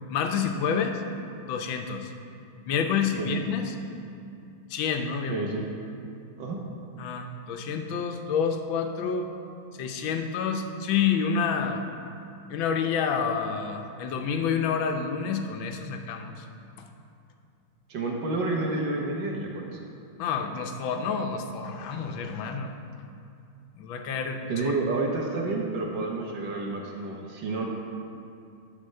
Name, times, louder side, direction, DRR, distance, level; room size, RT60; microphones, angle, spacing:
voice 1, 0.1-1.0 1.5-2.1 2.7-3.8 4.7-5.5 7.0-9.3 9.8-11.8 12.5-16.4 20.2-22.7 23.8-24.7, left 6 dB, 90° left, 5 dB, 1.5 m, -28 dB
voice 2, 5.3-5.7 6.4-6.6 17.9-19.8 24.5-27.7, right 3 dB, 70° right, 0 dB, 1.6 m, -29 dB
11.0 x 4.3 x 6.5 m, 2.5 s
omnidirectional pair, 2.1 m